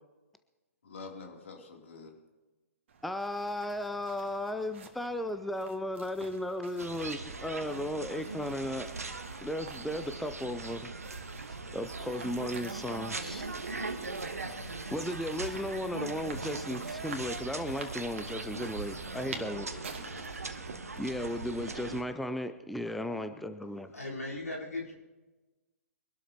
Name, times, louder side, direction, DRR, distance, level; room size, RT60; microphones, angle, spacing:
voice 1, 0.8-2.2 19.1-20.3 23.0-23.5, left 4 dB, 60° left, 1 dB, 3.0 m, -48 dB
sound 1, 2.9-21.5, right 5 dB, 55° right, 2.0 m, -51 dB
voice 2, 3.0-8.9 9.4-10.9 11.7-13.5 14.9-19.7 21.0-24.0, left 1 dB, ahead, 8 dB, 0.5 m, -35 dB
sound 2, 6.8-22.0, right 3 dB, 75° right, 1.3 m, -40 dB
sound 3, 11.8-19.4, left 4 dB, 15° left, 1.7 m, -56 dB
voice 3, 23.9-24.9, left 2 dB, 80° left, -3 dB, 4.0 m, -37 dB
25.0 x 12.0 x 2.9 m, 1.2 s
figure-of-eight pair, 125°, 8 cm